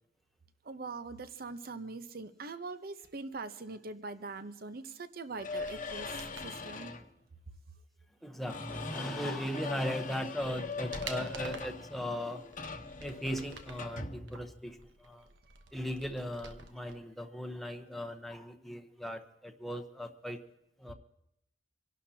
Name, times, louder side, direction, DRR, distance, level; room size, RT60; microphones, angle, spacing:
voice 1, 0.7-6.1 6.4-6.9, right 3 dB, 55° right, 11 dB, 0.8 m, -42 dB
sound 1, 5.4-7.1 8.4-14.7, left 4 dB, 45° left, 1.1 m, -41 dB
sound 2, 5.5-6.5 9.6-9.7 10.2-11.8 12.4-13.9 14.3-17.0 17.2-17.3, right 4 dB, 80° right, 1.1 m, -49 dB
voice 2, 8.2-12.4 13.0-15.3 15.7-20.4 20.8-20.9, equal, ahead, 4 dB, 0.9 m, -38 dB
26.5 x 11.5 x 2.8 m, 0.82 s
head